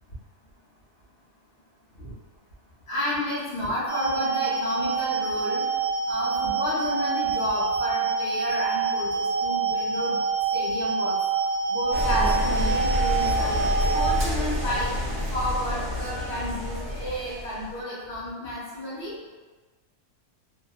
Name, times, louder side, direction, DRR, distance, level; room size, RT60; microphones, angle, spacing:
voice 1, 2.9-5.7 6.1-10.2 10.5-11.2 11.7-13.6 13.9-19.1, left 1 dB, 60° left, -8 dB, 1.1 m, -31 dB
sound 1, 3.9-14.1, right 5 dB, 90° left, 1.0 m, -26 dB
sound 2, 11.9-17.7, left 1 dB, 50° right, 0.6 m, -28 dB
2.8 x 2.1 x 2.2 m, 1.3 s
omnidirectional pair, 1.3 m